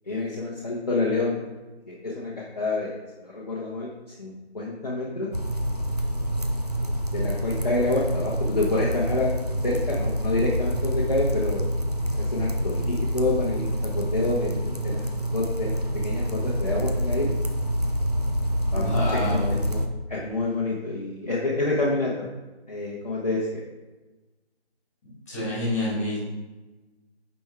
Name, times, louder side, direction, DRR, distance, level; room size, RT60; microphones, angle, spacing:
voice 1, 0.1-1.4 1.9-2.9 3.2-3.9 4.2-5.3 7.1-9.3 9.6-11.6 12.2-15.0 15.3-17.3 18.7-19.8 20.1-22.3 22.7-23.6, left 2 dB, 35° left, -6 dB, 1.0 m, -28 dB
sound 1, 5.3-19.9, equal, 35° right, 0.5 m, -27 dB
voice 2, 18.7-19.5 25.3-26.2, left 1 dB, 15° left, -8 dB, 2.2 m, -27 dB
8.9 x 5.4 x 3.5 m, 1.2 s
figure-of-eight pair, 165°, 34 cm